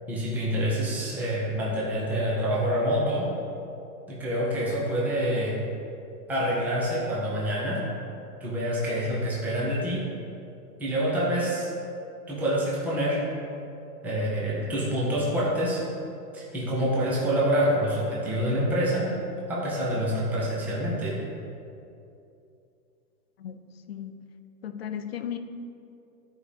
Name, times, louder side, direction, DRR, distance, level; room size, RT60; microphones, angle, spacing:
voice 1, 0.1-3.3 4.1-5.6 6.3-7.8 8.4-10.1 10.8-11.7 12.3-13.2 14.0-15.8 16.3-19.1 19.5-21.2, equal, 5° right, -6 dB, 0.6 m, -26 dB
voice 2, 24.6-25.4, left 9 dB, 40° left, 9 dB, 0.5 m, -35 dB
12.5 x 4.9 x 5.1 m, 2.7 s
hypercardioid pair, 165°, 48 cm